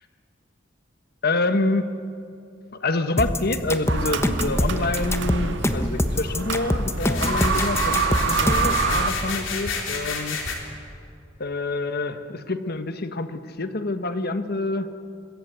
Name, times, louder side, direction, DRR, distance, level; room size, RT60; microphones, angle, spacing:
voice 1, 1.2-2.0 2.7-10.7 11.4-15.0, left 2 dB, 55° left, 9 dB, 1.3 m, -27 dB
sound 1, 3.2-8.8, left 1 dB, 15° left, 1.1 m, -24 dB
sound 2, 3.9-9.1, right 4 dB, 65° right, 1.6 m, -26 dB
sound 3, 6.9-10.6, left 4 dB, 80° left, 3.8 m, -30 dB
25.5 x 21.5 x 8.1 m, 2.5 s
head